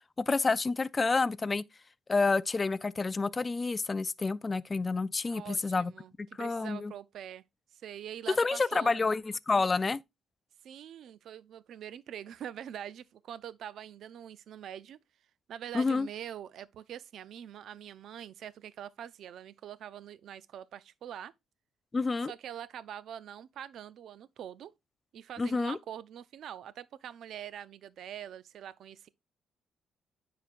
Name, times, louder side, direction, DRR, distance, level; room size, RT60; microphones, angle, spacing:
voice 1, 0.3-1.6 2.1-5.9 6.2-6.9 8.4-10.0 15.7-16.1 21.9-22.3 25.4-25.8, left 3 dB, 30° left, 0.3 m, -29 dB
voice 2, 5.3-7.4 7.7-9.0 10.6-15.0 15.5-21.3 22.3-24.7 25.1-29.1, right 10 dB, 70° right, 0.4 m, -44 dB
9.2 x 5.0 x 2.5 m
cardioid pair, 90°, 0 cm